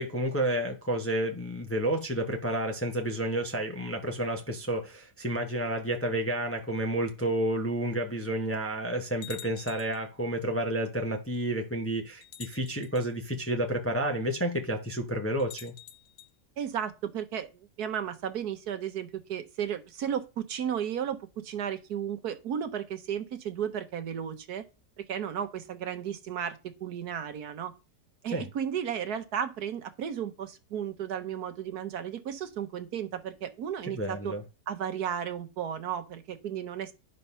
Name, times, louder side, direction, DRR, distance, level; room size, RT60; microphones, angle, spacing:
voice 1, 0.0-15.7 28.3-28.4 33.9-34.4, right 1 dB, 10° left, 0.9 m, -30 dB
sound 1, 9.2-10.1 11.2-11.3 12.2-13.1 15.4-16.3, left 12 dB, 80° left, 1.3 m, -47 dB
voice 2, 16.6-24.6 25.1-27.7 28.2-34.3 34.7-36.9, right 8 dB, 65° right, 1.4 m, -34 dB
10.5 x 4.4 x 5.6 m
omnidirectional pair, 1.8 m